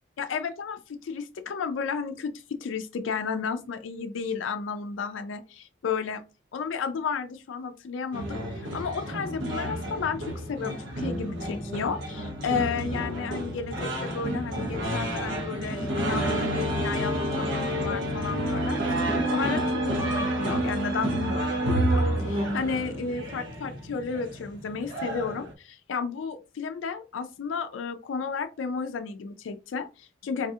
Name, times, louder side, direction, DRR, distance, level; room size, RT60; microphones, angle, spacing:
voice 1, 0.2-6.2 6.5-30.5, left 5 dB, 85° left, 0.4 m, -33 dB
sound 1, 8.1-25.5, right 1 dB, 85° right, 1.0 m, -29 dB
4.0 x 2.7 x 2.4 m
head